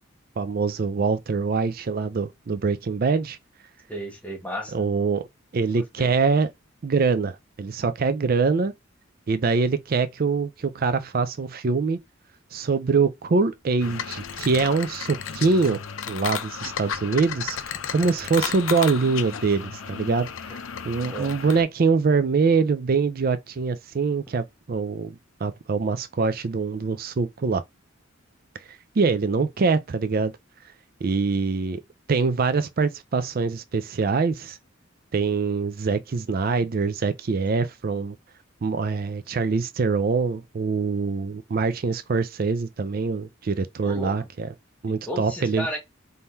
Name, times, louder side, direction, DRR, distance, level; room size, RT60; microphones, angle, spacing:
voice 1, 0.4-3.4 4.7-5.3 5.5-6.5 6.8-8.7 9.3-12.0 12.5-15.8 16.1-27.6 28.7-30.3 31.0-31.8 32.1-34.6 35.1-38.2 38.6-44.5 44.8-45.7, right 4 dB, 45° right, 0.4 m, -24 dB
voice 2, 3.9-4.7 6.0-6.1 21.1-21.3 43.8-44.1 44.9-45.8, equal, 5° left, 1.3 m, -33 dB
sound 1, 13.8-21.6, left 7 dB, 80° left, 0.6 m, -33 dB
3.6 x 2.7 x 4.4 m
head